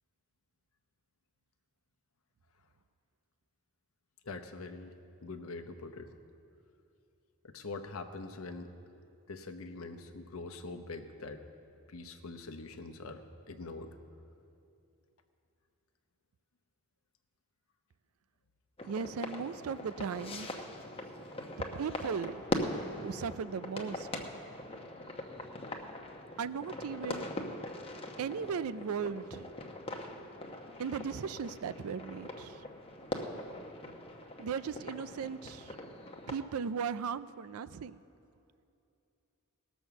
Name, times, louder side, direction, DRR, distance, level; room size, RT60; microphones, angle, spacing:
voice 1, 4.2-4.9 5.2-6.1 7.4-8.7 9.3-11.4 11.9-13.2 13.5-13.9, left 3 dB, 75° left, 6 dB, 0.8 m, -43 dB
sound 1, 18.8-36.4, left 1 dB, 25° left, 0.9 m, -41 dB
voice 2, 18.9-20.5 21.8-22.4 23.0-24.2 26.4-27.3 28.2-29.5 30.8-32.6 34.4-35.7 36.3-38.0, right 6 dB, 90° right, 15 dB, 0.4 m, -37 dB
18.5 x 6.2 x 7.0 m, 2.7 s
head